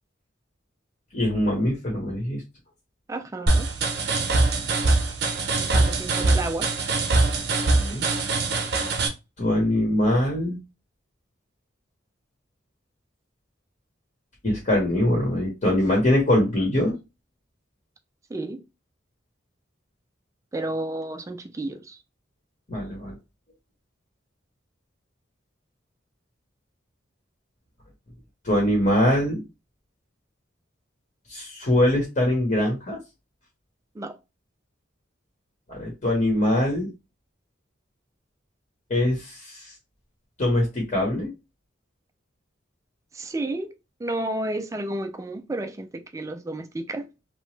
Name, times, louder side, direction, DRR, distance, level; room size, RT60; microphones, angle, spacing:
voice 1, 1.1-2.4 7.7-8.1 9.4-10.6 14.4-17.0 22.7-23.1 28.4-29.4 31.3-33.0 35.7-36.9 38.9-39.6 40.4-41.3, left 1 dB, 40° left, 1.0 m, -23 dB
voice 2, 3.1-3.7 5.6-6.7 18.3-18.6 20.5-22.0 33.9-34.2 43.1-47.1, right 2 dB, 15° right, 0.3 m, -31 dB
sound 1, 3.5-9.1, right 3 dB, 60° right, 0.6 m, -23 dB
2.9 x 2.1 x 3.1 m
head